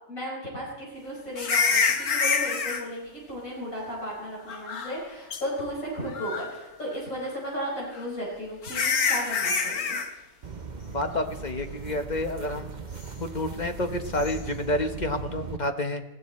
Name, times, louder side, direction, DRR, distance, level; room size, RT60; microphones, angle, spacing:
voice 1, 0.1-10.0, equal, 70° left, -4 dB, 5.6 m, -35 dB
sound 1, 1.4-2.8 4.5-5.0 5.3-5.4 6.1-6.6 8.0-8.1 8.6-10.1 14.2-14.3, left 5 dB, 85° left, 1.7 m, -26 dB
sound 2, 10.4-15.6, right 5 dB, 40° right, 0.7 m, -38 dB
voice 2, 10.9-12.8 13.2-16.0, left 1 dB, 35° left, 7 dB, 1.0 m, -29 dB
19.5 x 16.5 x 4.2 m, 1.0 s
omnidirectional pair, 1.5 m